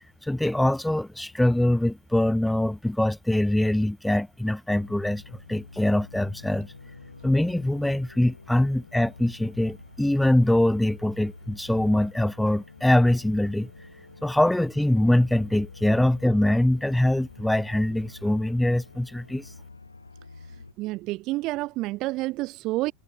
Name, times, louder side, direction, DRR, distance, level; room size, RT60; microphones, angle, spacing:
voice 1, 0.2-5.2 5.5-6.7 7.2-13.7 14.2-19.5, left 1 dB, 5° left, 0.8 m, -23 dB
sound 1, 4.7-20.7, left 3 dB, 80° left, 1.5 m, -48 dB
voice 2, 20.8-22.9, right 19 dB, 45° right, 0.4 m, -29 dB
figure-of-eight pair, 80°, 0 cm